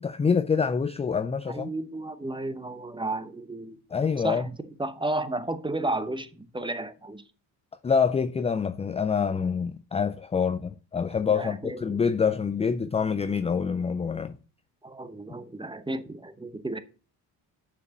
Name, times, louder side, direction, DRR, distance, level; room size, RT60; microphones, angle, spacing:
voice 1, 0.0-1.7 3.9-4.5 7.8-14.4, left 6 dB, 15° left, 0.3 m, -26 dB
voice 2, 1.5-3.8 4.2-7.2 11.3-12.0 14.8-16.8, right 2 dB, 10° right, 0.8 m, -33 dB
6.8 x 4.8 x 6.3 m
cardioid pair, 80°, 47 cm